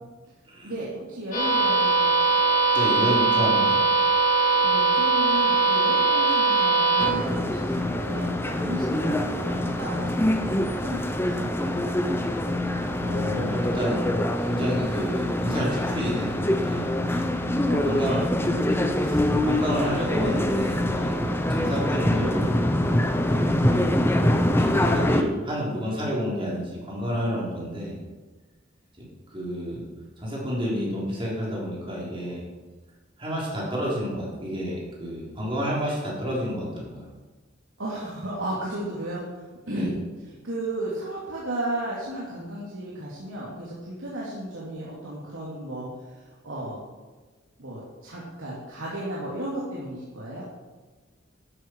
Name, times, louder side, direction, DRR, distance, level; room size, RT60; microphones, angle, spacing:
voice 1, 0.6-2.1 4.6-11.5 17.7-18.9 37.8-39.2 39.7-40.0 40.2-46.8 47.6-50.4, right 1 dB, 85° right, -7 dB, 2.8 m, -34 dB
sound 1, 1.3-7.1, right 4 dB, 40° left, 3.6 m, -21 dB
voice 2, 2.7-3.8 13.0-17.3 17.8-18.2 18.6-22.7 23.7-28.0 29.0-29.1 29.3-29.8 30.2-32.4 33.2-37.1 39.7-39.9, equal, 25° right, -5 dB, 4.0 m, -30 dB
sound 2, 7.0-25.2, left 1 dB, 10° left, 0.7 m, -24 dB
12.5 x 10.5 x 4.7 m, 1.3 s
head